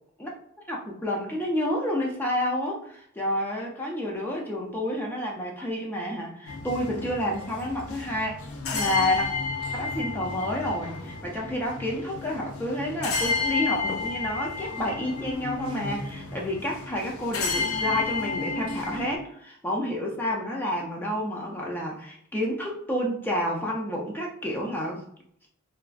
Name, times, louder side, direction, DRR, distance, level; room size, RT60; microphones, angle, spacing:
voice 1, 0.7-8.3 8.7-9.3 9.7-25.0, left 1 dB, 10° left, -2 dB, 0.3 m, -29 dB
sound 1, 6.5-19.2, left 4 dB, 70° left, 0.4 m, -32 dB
2.3 x 2.2 x 2.3 m, 0.69 s
head